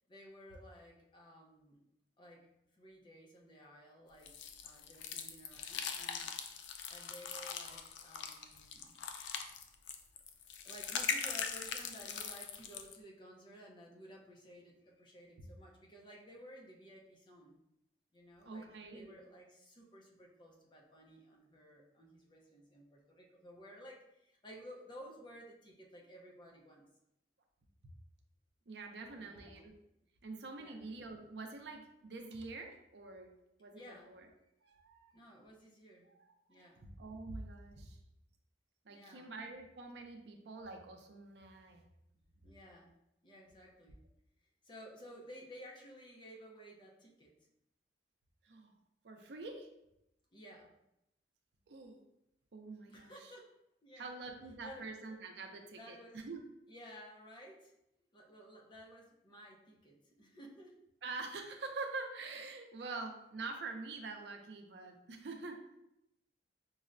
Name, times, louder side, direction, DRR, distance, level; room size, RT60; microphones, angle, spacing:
voice 1, 0.1-1.8 2.2-6.3 6.9-8.9 10.6-17.6 18.1-26.9 29.1-29.5 30.5-30.8 33.7-34.1 35.1-36.1 36.5-36.8 38.9-39.3 42.4-43.0 43.2-44.0 44.6-47.4 50.3-50.7 52.9-53.5 53.8-54.1 54.6-54.9 55.7-56.2 56.7-57.7 58.1-60.8, equal, 25° left, -1 dB, 0.5 m, -55 dB
sound 1, 4.3-13.0, left 6 dB, 85° left, 0.3 m, -41 dB
voice 2, 18.5-19.2 28.7-29.7 30.2-33.3 33.6-34.3 34.6-35.1 36.1-38.0 38.9-41.9 48.4-48.7 49.0-49.7 51.7-52.0 52.5-53.1 54.0-56.4 61.0-65.6, right 3 dB, 70° right, 4 dB, 0.5 m, -46 dB
5.3 x 2.1 x 2.5 m, 0.84 s
head